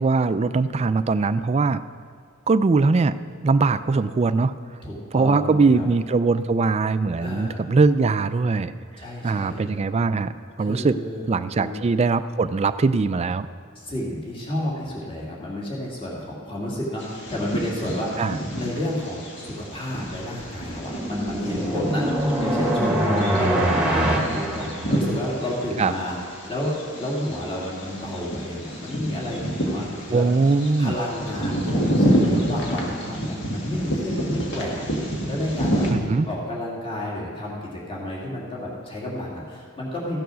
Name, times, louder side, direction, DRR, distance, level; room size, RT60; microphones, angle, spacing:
voice 1, 0.0-1.8 2.5-3.1 3.4-4.5 5.1-8.7 9.2-10.3 10.6-11.0 11.3-13.5 18.2-18.4 25.8-25.9 30.1-31.0 35.9-36.3, right 4 dB, 30° right, 13 dB, 0.3 m, -21 dB
voice 2, 4.8-5.9 7.2-7.6 9.0-9.7 10.6-11.3 11.6-11.8 13.7-18.3 18.6-26.2 26.5-30.2 30.8-34.8 35.3-35.8 36.3-40.2, left 1 dB, 25° left, -4 dB, 2.3 m, -31 dB
Bird vocalization bird call bird song, 17.0-35.9, equal, 55° left, 1.9 m, -28 dB
sound 1, 20.2-25.4, right 1 dB, 5° right, 1.2 m, -24 dB
15.0 x 7.0 x 6.2 m, 2.1 s
head